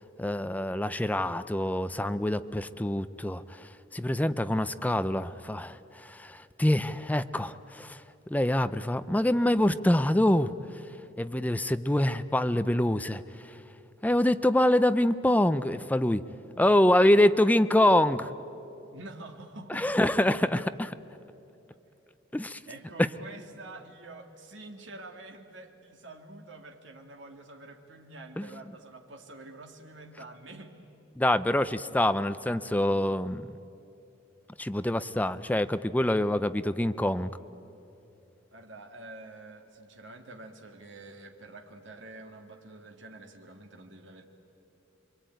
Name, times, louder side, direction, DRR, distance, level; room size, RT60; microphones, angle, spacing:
voice 1, 0.2-8.0 8.3-10.5 11.2-13.2 14.0-16.2 16.6-18.3 19.7-20.6 22.3-22.6 28.4-28.5 31.2-33.5 34.6-37.3, left 1 dB, 10° left, 12 dB, 0.5 m, -25 dB
voice 2, 18.9-20.7 22.7-30.7 38.5-44.2, right 2 dB, 75° right, 3 dB, 1.9 m, -47 dB
26.5 x 22.5 x 9.2 m, 2.9 s
head